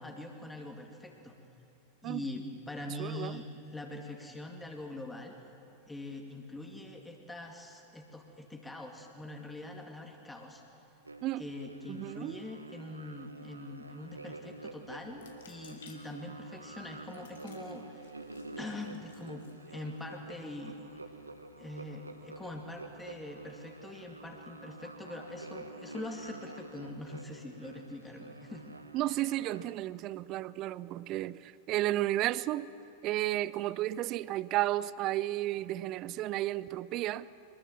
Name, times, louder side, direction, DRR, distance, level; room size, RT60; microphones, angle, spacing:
voice 1, 0.0-1.4 2.0-3.4 3.7-5.3 5.9-10.6 11.4-18.2 18.6-20.8 21.6-28.7 29.1-29.2, left 2 dB, 10° left, 2 dB, 2.4 m, -43 dB
voice 2, 3.0-3.4 11.2-11.4 11.9-12.4 28.9-32.7 33.0-37.3, right 15 dB, 40° right, 19 dB, 0.6 m, -33 dB
sound 1, 11.0-29.8, right 2 dB, 80° right, 1.2 m, -48 dB
sound 2, 15.1-20.4, left 7 dB, 60° left, 2.4 m, -60 dB
23.5 x 21.5 x 7.4 m, 2.8 s
figure-of-eight pair, 90°, 0 cm